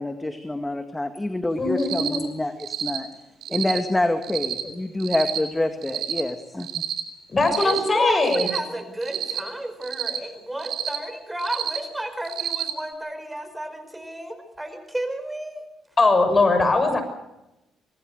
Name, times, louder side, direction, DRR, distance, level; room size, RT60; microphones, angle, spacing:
voice 1, 0.0-3.1 3.5-6.8, left 1 dB, 15° left, 7 dB, 2.1 m, -27 dB
voice 2, 1.6-2.3 7.3-8.5 16.0-17.0, left 3 dB, 30° left, 8 dB, 6.2 m, -20 dB
Cricket, 1.8-2.2 2.6-3.0 3.4-3.8 4.2-4.6 5.0-5.4 5.8-6.2 6.6-7.0 7.4-7.8 8.2-8.6 9.0-9.4 9.8-10.2 10.6-11.0 11.4-11.8 12.2-12.7, right 10 dB, 75° right, 3.8 m, -29 dB
voice 3, 7.5-15.7, right 1 dB, 10° right, 9 dB, 4.9 m, -33 dB
25.5 x 19.0 x 6.7 m, 0.93 s
cardioid pair, 90°, 0 cm